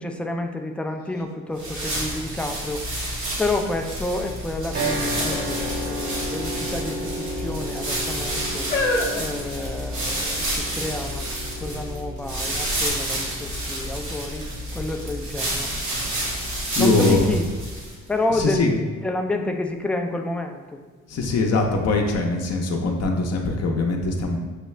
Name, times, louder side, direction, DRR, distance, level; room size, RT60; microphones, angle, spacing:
voice 1, 0.0-2.8 3.4-8.7 9.2-11.3 11.6-15.7 16.8-17.5 18.1-20.6, left 2 dB, 5° left, 4 dB, 0.4 m, -29 dB
sound 1, 1.1-1.2 1.7-3.2 3.8-4.3 5.1-5.5 5.8-5.9 6.8-7.4 8.1-10.2 10.9-11.0, left 2 dB, 35° left, 1.0 m, -30 dB
sound 2, 1.6-18.1, right 1 dB, 80° right, 1.4 m, -29 dB
sound 3, 4.7-18.9, equal, 50° right, 1.0 m, -35 dB
voice 2, 16.8-17.4 18.3-18.8 21.1-24.4, left 3 dB, 55° left, 2 dB, 0.7 m, -22 dB
6.3 x 2.3 x 3.1 m, 1.4 s
cardioid pair, 90°, 30 cm